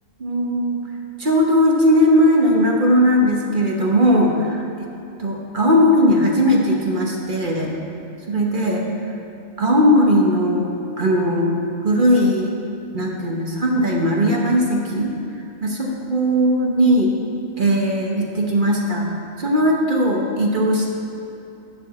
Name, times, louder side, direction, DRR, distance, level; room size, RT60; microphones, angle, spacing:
voice 1, 0.2-0.8 1.2-4.3 4.6-4.7 5.2-7.7 8.3-8.9 9.6-10.7 11.0-11.5 11.8-12.6 12.9-15.1 15.6-17.1 17.6-19.1 19.4-21.0, equal, 45° right, -1 dB, 1.1 m, -18 dB
11.0 x 4.9 x 7.2 m, 2.8 s
omnidirectional pair, 1.3 m